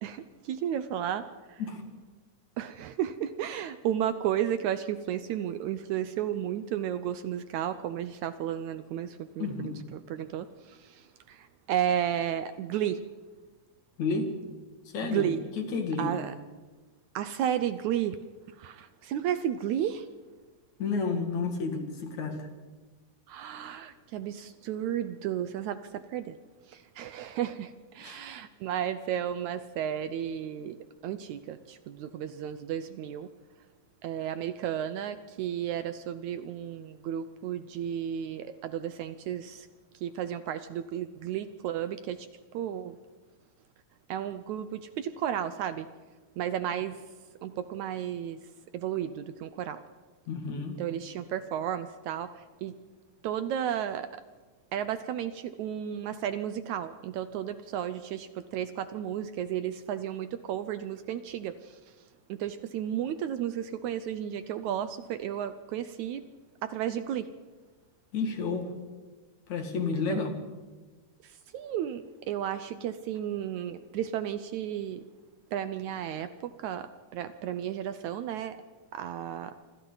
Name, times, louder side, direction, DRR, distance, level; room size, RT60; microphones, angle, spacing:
voice 1, 0.0-1.2 1.5-1.6 2.6-13.0 15.0-15.5 16.0-16.3 17.2-18.2 18.6-20.1 23.3-26.4 26.7-30.8 31.0-33.3 34.0-39.7 40.0-42.3 42.5-43.0 44.1-45.9 46.4-47.0 47.4-48.4 48.7-49.8 50.8-52.8 53.2-54.2 54.7-61.8 62.3-66.2 66.6-67.3 70.1-70.3 71.2-75.0 75.5-76.9 77.1-78.6 78.9-79.5, right 10 dB, 75° right, 11 dB, 1.9 m, -33 dB
voice 2, 9.4-9.8 14.0-14.3 14.9-15.3 15.6-16.1 20.8-22.5 28.0-28.2 50.3-50.8 68.1-68.7 69.5-70.3, left 4 dB, 60° left, 4 dB, 3.4 m, -31 dB
26.0 x 25.5 x 4.0 m, 1.3 s
omnidirectional pair, 3.8 m